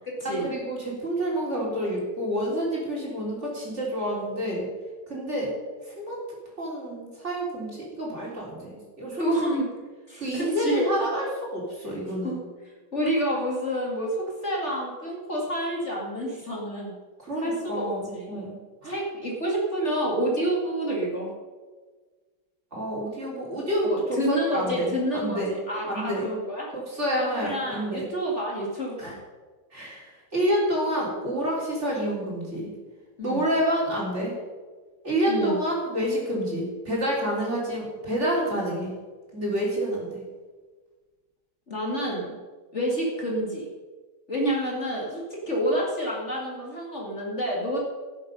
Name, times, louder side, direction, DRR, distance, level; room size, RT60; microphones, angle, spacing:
voice 1, 0.2-4.7 5.1-5.5 5.8-6.2 6.6-9.2 9.5-9.6 10.2-12.4 17.2-18.6 18.8-19.0 22.7-25.5 25.8-26.3 26.9-28.1 29.0-29.1 29.7-32.7 33.2-34.3 35.0-38.9 39.3-40.2, equal, 35° right, -3 dB, 3.8 m, -28 dB
voice 2, 9.2-9.7 10.1-10.9 12.1-12.4 12.9-16.9 17.4-18.3 18.8-21.3 23.8-26.7 27.2-29.2 33.2-33.4 35.3-35.6 41.7-42.4 42.7-43.7 44.3-47.8, equal, 35° left, -3 dB, 2.5 m, -28 dB
17.5 x 7.6 x 5.4 m, 1.4 s
omnidirectional pair, 2.1 m